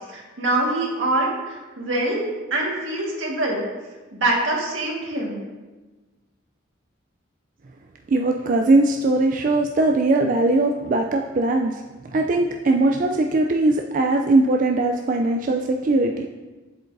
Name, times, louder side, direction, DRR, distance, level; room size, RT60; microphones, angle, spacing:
voice 1, 0.1-2.2 2.5-3.6 4.1-5.4, right 2 dB, 80° right, -2 dB, 1.7 m, -24 dB
voice 2, 8.1-11.8 12.1-16.3, right 2 dB, 45° right, 2 dB, 0.4 m, -20 dB
7.8 x 7.4 x 2.6 m, 1.2 s
head